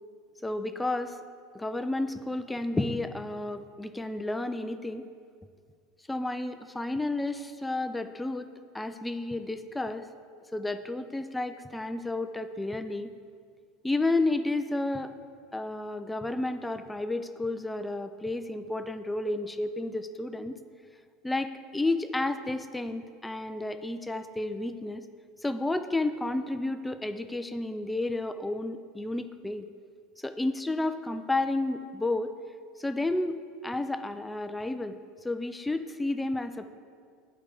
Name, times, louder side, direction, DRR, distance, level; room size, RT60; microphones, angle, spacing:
voice 1, 0.4-1.2 1.5-5.0 6.1-8.5 8.7-10.0 10.5-13.1 13.8-15.1 15.5-20.6 21.2-25.0 25.4-29.7 30.2-32.3 32.8-33.4 33.6-35.0 35.2-36.7, left 2 dB, 10° left, 10 dB, 0.4 m, -31 dB
8.5 x 4.7 x 6.7 m, 2.2 s
supercardioid pair, 110°, 0 cm